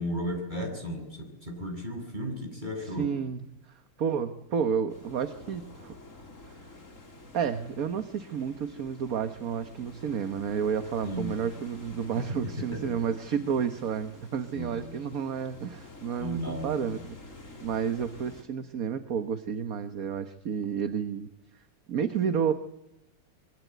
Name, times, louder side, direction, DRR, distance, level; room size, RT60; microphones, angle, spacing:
voice 1, 0.0-3.1 11.0-11.3 12.1-12.2 12.6-12.8 14.5-14.9 16.2-16.8, equal, 20° right, 3 dB, 7.5 m, -34 dB
voice 2, 2.9-3.4 3.7-5.9 6.5-6.6 7.3-17.0 17.6-21.3 21.9-22.5, right 7 dB, 50° right, 9 dB, 1.4 m, -31 dB
sound 1, 4.9-18.4, left 2 dB, 35° left, 3.7 m, -49 dB
25.0 x 23.5 x 9.3 m, 0.86 s
omnidirectional pair, 2.3 m